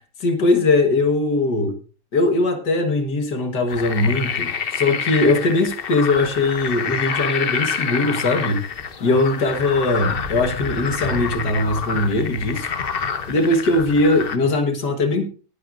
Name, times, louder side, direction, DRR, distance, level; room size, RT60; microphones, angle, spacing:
voice 1, 0.2-1.8 2.1-8.6 9.0-12.7 13.3-15.2, left 2 dB, 55° left, 6 dB, 2.0 m, -20 dB
sound 1, 3.7-14.4, left 6 dB, 90° left, 0.5 m, -27 dB
18.0 x 10.5 x 2.6 m, 0.36 s
omnidirectional pair, 2.3 m